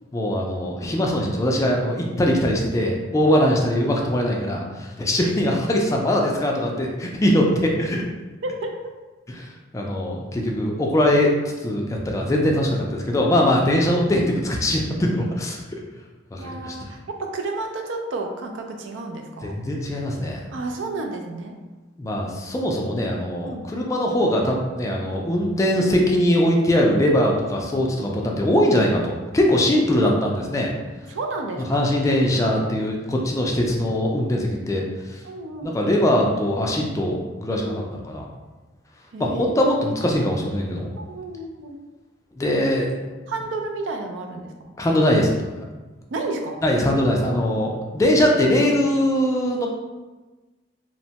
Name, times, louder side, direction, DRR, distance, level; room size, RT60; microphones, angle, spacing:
voice 1, 0.1-8.0 9.3-9.5 9.7-11.3 11.6-15.6 16.3-16.8 19.4-20.4 22.0-30.7 31.7-35.2 35.6-38.2 39.2-40.9 42.4-43.1 44.8-45.4 46.6-49.7, left 1 dB, 15° left, 0 dB, 0.3 m, -21 dB
voice 2, 8.4-8.8 16.4-19.5 20.5-21.5 23.5-23.7 31.1-31.8 35.2-35.8 37.6-37.8 39.1-39.7 41.0-41.8 43.3-44.5 46.1-46.6, right 2 dB, 80° right, 3 dB, 0.4 m, -31 dB
2.9 x 2.1 x 2.7 m, 1.2 s
head